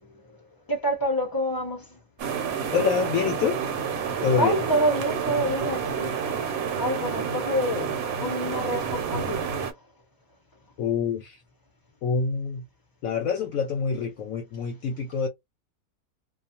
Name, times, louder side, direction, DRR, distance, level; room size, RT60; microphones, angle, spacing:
voice 1, 0.7-2.0 4.2-6.1 6.8-7.9 8.2-9.4, equal, 30° left, 0.4 m, -27 dB
sound 1, 2.2-9.7, right 6 dB, 65° right, 1.1 m, -29 dB
voice 2, 2.7-3.6 4.2-4.6 10.8-11.4 12.0-12.6 13.0-15.3, left 6 dB, 70° left, 0.9 m, -26 dB
2.4 x 2.3 x 2.8 m
omnidirectional pair, 1.7 m